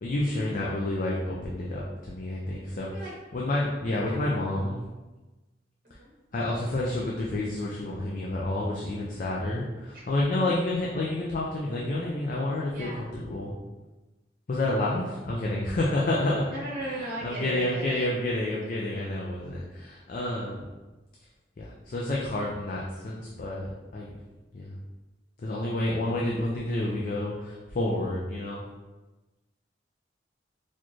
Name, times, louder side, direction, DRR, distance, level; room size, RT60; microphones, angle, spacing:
voice 1, 0.0-2.9 3.3-4.8 6.3-13.6 14.5-16.5 17.2-20.7 21.6-24.1 24.5-24.8 25.4-28.6, left 1 dB, 50° left, -4 dB, 0.4 m, -29 dB
voice 2, 2.8-3.1 4.0-4.2 5.8-6.1 12.7-13.0 14.8-15.2 16.5-18.1, right 1 dB, 50° right, -5 dB, 0.8 m, -37 dB
4.2 x 2.4 x 3.1 m, 1.2 s
head